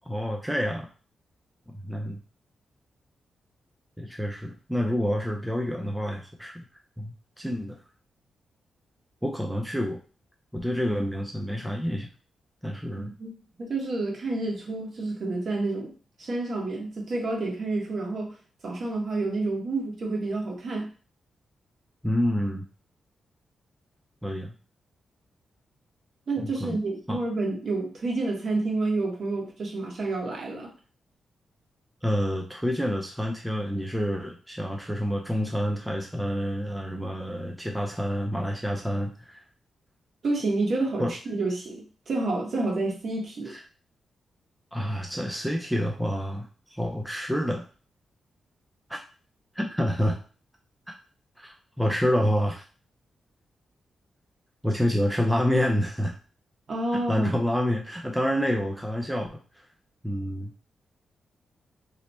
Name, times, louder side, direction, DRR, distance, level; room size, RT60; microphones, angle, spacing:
voice 1, 0.1-0.9 1.7-2.2 4.0-6.5 7.0-7.8 9.2-10.0 10.5-12.1 12.6-13.1 22.0-22.7 24.2-24.5 26.4-26.8 27.1-27.2 32.0-39.4 41.0-41.1 43.5-43.6 44.7-47.6 49.5-50.2 51.4-52.7 54.6-56.1 56.9-59.4 60.0-60.5, equal, 5° right, 0 dB, 0.4 m, -28 dB
voice 2, 13.0-13.3 13.6-15.9 16.2-18.3 18.6-20.9 26.3-30.7 40.2-43.6 56.7-57.3, right 2 dB, 50° right, -1 dB, 1.0 m, -29 dB
3.0 x 2.0 x 4.1 m, 0.37 s
wide cardioid pair, 140°, 0 cm